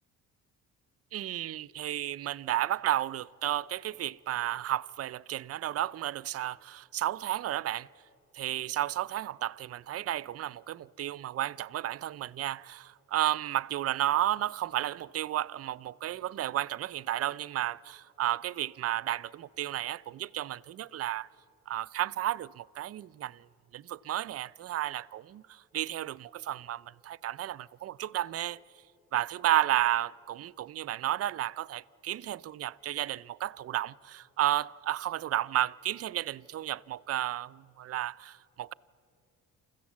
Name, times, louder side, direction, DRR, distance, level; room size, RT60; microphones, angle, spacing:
voice 1, 1.1-7.9 8.3-21.3 21.7-23.5 23.7-28.6 29.1-38.7, right 13 dB, 45° right, 0.4 m, -32 dB
28.0 x 15.0 x 7.4 m
cardioid pair, 105°, 34 cm